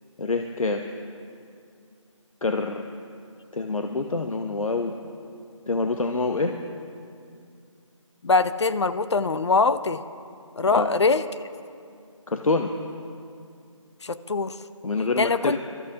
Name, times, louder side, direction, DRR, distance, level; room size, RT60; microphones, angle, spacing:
voice 1, 0.2-0.8 2.4-2.8 3.5-4.9 5.7-6.5 10.7-10.9 12.3-12.7 14.8-15.5, left 3 dB, 85° left, 4 dB, 0.9 m, -26 dB
voice 2, 8.2-10.0 10.6-11.2 14.0-14.5 15.2-15.6, left 4 dB, 55° left, 13 dB, 0.5 m, -22 dB
24.0 x 13.5 x 2.9 m, 2.4 s
figure-of-eight pair, 175°, 17 cm